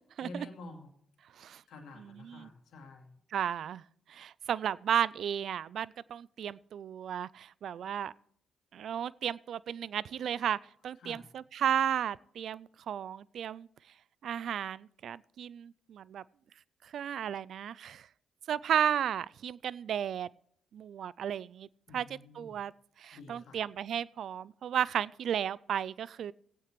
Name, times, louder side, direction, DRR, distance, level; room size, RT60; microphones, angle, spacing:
voice 1, 0.2-0.9 1.7-3.2 11.0-11.3 21.9-22.6 23.1-23.6, left 2 dB, 75° left, 3 dB, 2.4 m, -48 dB
voice 2, 3.3-3.8 4.1-8.1 8.7-13.7 14.2-16.2 16.8-18.1 18.5-20.3 20.7-21.7 21.9-22.1 22.4-22.7 23.0-26.3, right 9 dB, 70° right, 22 dB, 0.3 m, -34 dB
17.5 x 8.6 x 3.2 m, 0.69 s
supercardioid pair, 50°, 0 cm